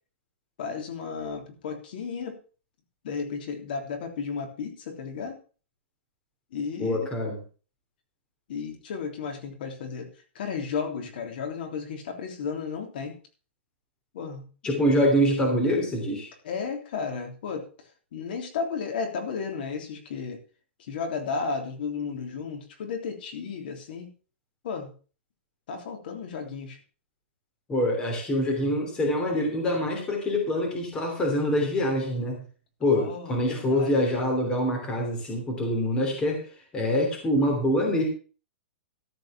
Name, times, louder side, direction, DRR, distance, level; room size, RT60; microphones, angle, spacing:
voice 1, 0.6-2.4 3.0-5.4 6.5-7.0 8.5-10.1 10.3-13.2 14.1-14.5 16.4-20.4 20.8-24.1 24.6-24.9 25.7-26.8 32.9-34.3, left 5 dB, 55° left, 4 dB, 3.4 m, -33 dB
voice 2, 6.8-7.4 14.6-16.3 27.7-32.4 32.8-36.4 36.7-38.0, equal, 10° left, 1 dB, 2.9 m, -25 dB
14.0 x 5.3 x 7.0 m, 0.36 s
hypercardioid pair, 170°, 6 cm